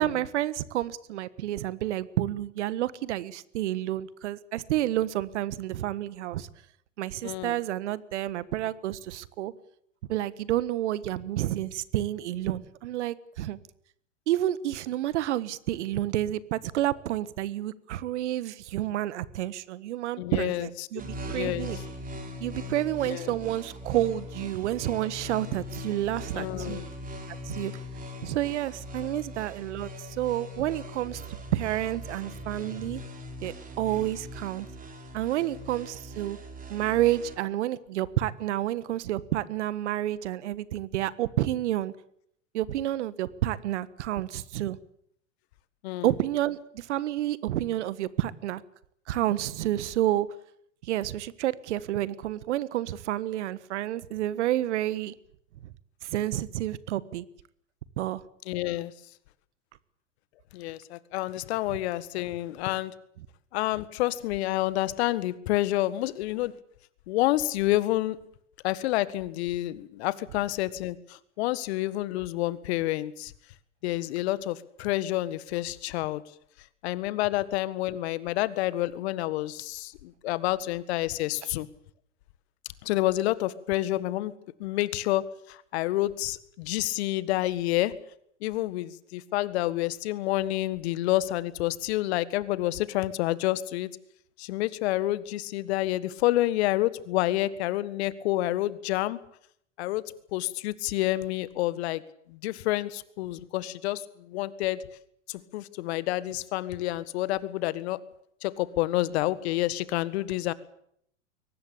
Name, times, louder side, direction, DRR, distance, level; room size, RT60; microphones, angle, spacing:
voice 1, 0.0-6.5 7.0-9.5 10.1-13.6 14.3-21.8 22.4-26.8 27.4-27.7 28.2-31.2 31.5-33.0 33.4-34.7 35.1-36.4 36.7-41.9 42.5-44.8 46.0-48.6 49.1-50.3 50.8-55.1 56.0-57.2 58.0-58.2, right 13 dB, 65° right, 18 dB, 1.5 m, -29 dB
voice 2, 7.2-7.6 20.2-20.9 21.3-21.7 23.1-23.4 26.3-26.9 45.8-46.1 58.5-58.9 60.5-62.9 63.5-66.6 67.1-68.2 68.6-73.3 73.8-76.2 76.8-81.7 82.8-84.4 84.6-87.9 88.4-93.9 94.4-99.2 99.8-102.0 102.3-104.8 105.3-108.0 108.4-110.5, left 16 dB, 55° left, 16 dB, 1.7 m, -29 dB
sound 1, 21.0-37.3, left 1 dB, 20° right, 4.8 m, -40 dB
23.0 x 18.5 x 8.7 m, 0.69 s
hypercardioid pair, 100°, 37 cm